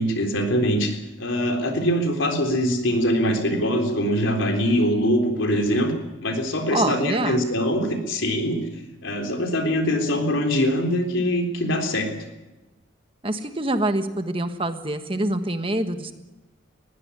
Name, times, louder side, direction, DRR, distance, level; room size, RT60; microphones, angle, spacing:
voice 1, 0.0-5.9 6.2-8.6 9.0-12.1, equal, 75° left, 4 dB, 3.7 m, -23 dB
voice 2, 6.7-7.4 13.2-16.1, right 1 dB, 25° right, 8 dB, 1.4 m, -25 dB
21.0 x 16.0 x 9.9 m, 1.1 s
head